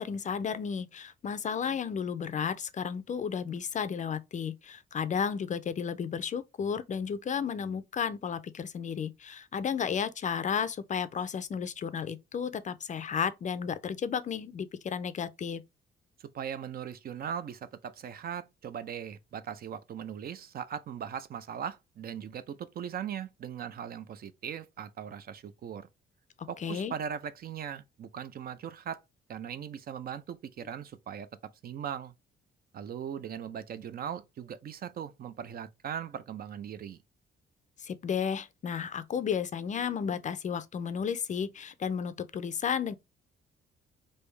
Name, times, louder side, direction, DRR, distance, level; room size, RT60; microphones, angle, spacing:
voice 1, 0.0-15.6 26.6-26.9 37.8-42.9, left 7 dB, 40° left, 0.4 m, -33 dB
voice 2, 16.2-25.9 26.5-29.0 29.3-31.3 31.6-32.1 32.7-37.0, right 8 dB, 50° right, 0.4 m, -39 dB
3.4 x 2.6 x 3.2 m
cardioid pair, 90°, 20 cm